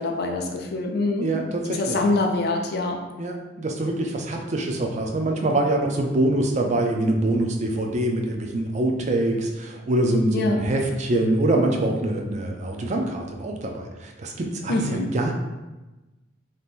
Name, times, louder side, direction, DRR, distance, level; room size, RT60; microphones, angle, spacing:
voice 1, 0.0-1.3 1.6-3.1 10.3-10.7 14.7-15.1, left 2 dB, 60° left, 2 dB, 0.4 m, -25 dB
voice 2, 1.2-2.0 3.2-14.8 15.1-15.3, right 1 dB, 40° right, 2 dB, 0.4 m, -24 dB
2.8 x 2.5 x 3.5 m, 1.1 s
head